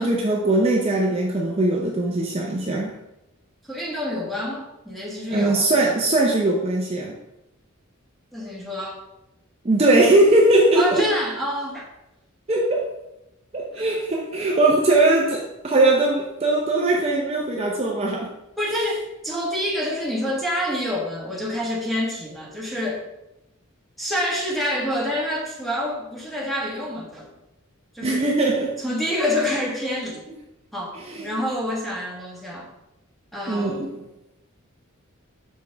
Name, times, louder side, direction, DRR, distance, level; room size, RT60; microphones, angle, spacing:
voice 1, 0.0-2.9 5.3-7.1 9.6-11.0 12.5-12.9 13.5-18.3 28.0-28.8 31.0-31.3 33.5-33.9, right 2 dB, 30° right, -1 dB, 0.6 m, -20 dB
voice 2, 3.7-5.7 8.3-9.0 10.7-11.8 13.7-13.8 18.6-23.0 24.0-27.3 27.9-28.3 28.8-30.3 30.7-31.0 31.2-32.7 33.3-34.0, left 1 dB, ahead, -3 dB, 1.3 m, -27 dB
6.4 x 5.2 x 3.4 m, 0.91 s
head